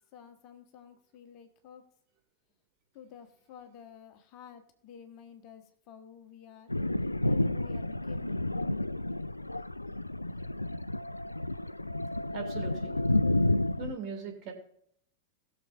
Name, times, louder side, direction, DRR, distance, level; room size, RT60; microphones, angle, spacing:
voice 1, 0.1-1.9 2.9-6.7 7.3-8.5, left 8 dB, 40° left, 6 dB, 1.4 m, -51 dB
Thunder, 6.7-13.9, left 1 dB, 85° left, 0.3 m, -30 dB
voice 2, 12.3-13.0 13.8-14.5, right 5 dB, 40° right, 2 dB, 2.5 m, -39 dB
20.0 x 6.8 x 2.6 m, 0.66 s
figure-of-eight pair, 90°, 0 cm